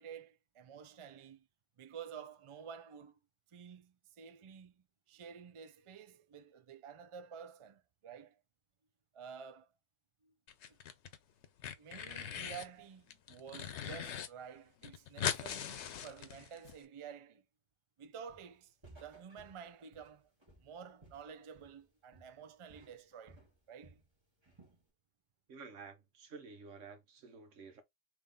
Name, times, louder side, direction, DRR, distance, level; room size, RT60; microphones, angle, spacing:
voice 1, 0.0-1.5 1.8-3.2 3.5-8.4 9.1-9.7 10.2-10.4 10.7-10.8 11.8-17.4 18.0-18.7 19.0-20.3 20.6-23.4 23.7-24.0, right 7 dB, 45° right, 0.4 m, -51 dB
sound 1, 10.5-11.2 11.4-12.7 13.1-14.3 14.6-14.7 14.8-16.8, left 8 dB, 70° left, 0.9 m, -40 dB
Walk footsteps, 18.3-18.6 18.8-21.9 22.1-22.4 22.7-24.1 24.4-24.8, right 2 dB, 20° right, 1.6 m, -61 dB
voice 2, 25.5-27.8, right 4 dB, 90° right, 1.3 m, -51 dB
3.5 x 3.1 x 3.7 m
omnidirectional pair, 1.2 m